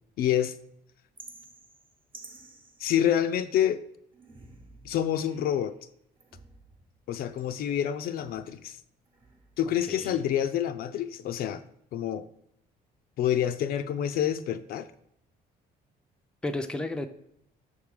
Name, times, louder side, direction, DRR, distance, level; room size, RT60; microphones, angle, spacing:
voice 1, 0.2-0.5 2.8-3.8 4.8-5.7 7.1-8.8 9.6-11.6 11.9-12.2 13.2-14.9, left 10 dB, 65° left, 10 dB, 0.4 m, -27 dB
sound 1, 1.2-3.6 4.1-5.7 6.2-8.7 9.1-9.7, right 2 dB, 30° right, 1.0 m, -53 dB
voice 2, 9.7-10.2 16.4-17.1, left 2 dB, 5° left, 6 dB, 0.4 m, -33 dB
6.5 x 3.5 x 4.8 m, 0.74 s
cardioid pair, 110°, 17 cm